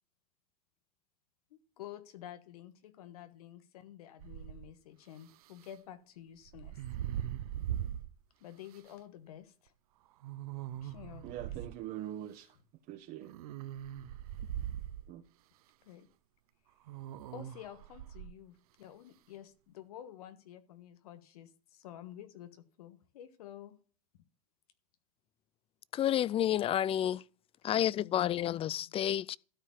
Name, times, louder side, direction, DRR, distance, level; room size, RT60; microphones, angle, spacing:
voice 1, 1.5-6.8 8.4-9.7 10.7-11.2 15.8-16.1 17.3-23.8 27.7-28.7, left 11 dB, 80° left, 1.3 m, -50 dB
sound 1, 4.2-4.7 6.5-8.1 8.8-8.9 10.2-11.7 13.2-15.1 16.9-18.3, right 11 dB, 75° right, 0.7 m, -40 dB
voice 2, 11.2-12.6 12.9-13.4 15.1-15.2, right 12 dB, 55° right, 1.1 m, -43 dB
voice 3, 25.9-27.2 27.6-29.4, left 11 dB, 30° left, 0.4 m, -30 dB
13.0 x 4.7 x 7.2 m
hypercardioid pair, 90°, 19 cm